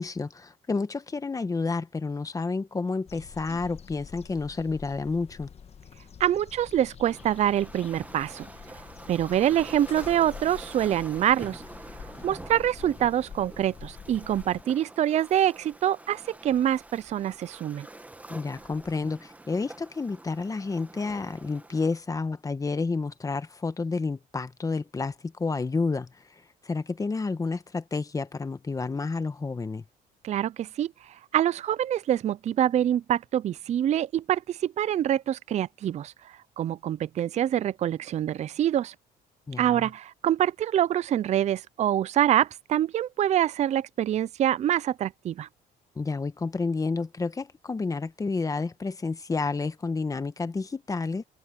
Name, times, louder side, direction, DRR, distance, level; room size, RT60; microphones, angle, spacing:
voice 1, 0.0-5.5 18.3-26.1 26.6-29.8 39.5-39.9 46.0-51.2, left 4 dB, 20° left, 1.2 m, -30 dB
sound 1, 3.1-14.6, left 7 dB, 40° left, 1.4 m, -47 dB
voice 2, 6.2-8.5 9.1-11.6 12.2-17.9 30.2-30.9 31.3-38.9 39.6-45.5, right 11 dB, 45° right, 0.4 m, -25 dB
Waves surf, 7.0-22.0, right 2 dB, 10° right, 1.4 m, -46 dB
cardioid pair, 110°, 17 cm